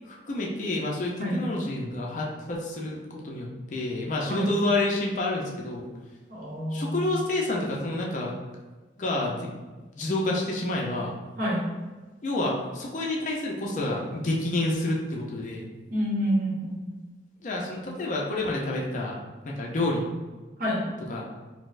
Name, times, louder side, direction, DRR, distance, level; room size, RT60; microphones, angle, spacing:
voice 1, 0.0-5.9 6.7-8.4 9.0-9.5 10.0-11.2 12.2-15.7 17.4-19.2 19.5-20.0 21.1-21.3, left 2 dB, 45° left, -2 dB, 0.4 m, -29 dB
voice 2, 6.3-7.2 11.4-11.7 15.9-16.8 20.6-20.9, equal, 50° right, -5 dB, 0.9 m, -28 dB
4.0 x 2.0 x 2.4 m, 1.2 s
head